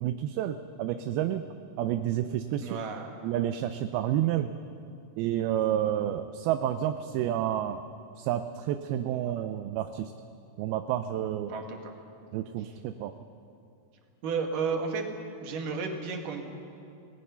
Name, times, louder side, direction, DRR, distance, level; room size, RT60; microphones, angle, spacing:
voice 1, 0.0-1.5 1.8-2.8 3.2-4.5 5.2-7.8 8.2-10.1 10.6-11.5 12.3-13.1, right 11 dB, 80° right, 9 dB, 2.5 m, -29 dB
voice 2, 2.6-3.1 11.5-11.8 14.2-15.1 15.4-16.5, right 5 dB, 60° right, 2 dB, 3.3 m, -32 dB
30.0 x 19.0 x 5.7 m, 2.7 s
omnidirectional pair, 4.5 m